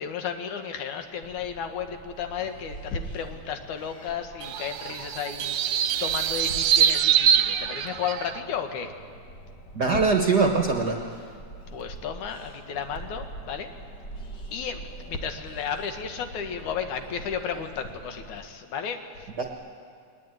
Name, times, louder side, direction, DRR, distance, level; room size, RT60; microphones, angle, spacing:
voice 1, 0.0-8.9 11.7-13.7 14.5-19.3, left 7 dB, 85° left, 6 dB, 2.9 m, -33 dB
sound 1, 1.2-18.4, right 2 dB, 40° left, 2.3 m, -45 dB
sound 2, 4.4-8.4, right 9 dB, 70° right, 1.8 m, -24 dB
voice 2, 9.7-11.0 19.4-19.5, right 4 dB, 50° right, 3 dB, 1.3 m, -22 dB
20.5 x 20.0 x 9.4 m, 2.2 s
omnidirectional pair, 3.3 m